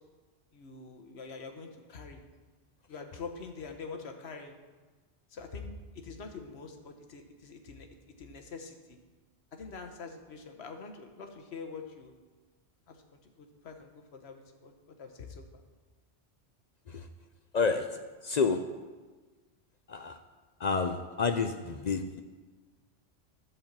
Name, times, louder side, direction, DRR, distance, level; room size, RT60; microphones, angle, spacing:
voice 1, 0.5-2.2 2.9-4.6 5.3-7.9 8.2-9.0 9.5-12.1 12.9-15.4, left 4 dB, 70° left, 4 dB, 1.2 m, -45 dB
voice 2, 17.5-17.9 18.2-18.6 19.9-20.2 20.6-22.2, left 5 dB, 55° left, 7 dB, 0.5 m, -29 dB
11.0 x 4.4 x 7.3 m, 1.3 s
omnidirectional pair, 1.2 m